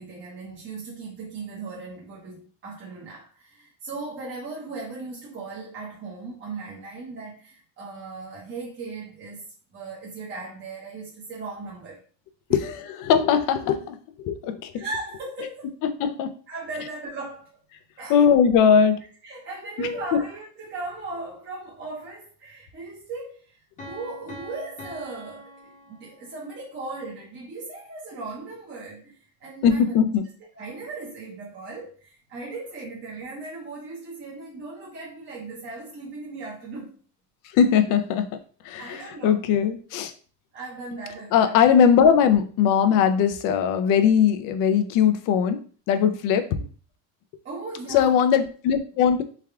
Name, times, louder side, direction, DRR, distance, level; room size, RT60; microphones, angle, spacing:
voice 1, 0.0-12.0 12.5-12.6 14.7-15.7 16.5-17.5 18.0-18.3 19.2-29.9 30.5-36.9 38.8-39.4 40.5-41.6 47.4-48.2, right 3 dB, 30° right, 0.9 m, -37 dB
voice 2, 12.5-14.8 15.8-16.4 18.1-19.0 19.8-19.9 29.6-30.2 37.5-38.3 38.6-40.1 41.3-45.6 45.9-46.5 47.9-49.2, left 7 dB, 60° left, 0.5 m, -20 dB
Piano, 23.8-26.6, equal, 20° left, 0.9 m, -43 dB
3.4 x 2.2 x 3.5 m
cardioid pair, 150°, 36 cm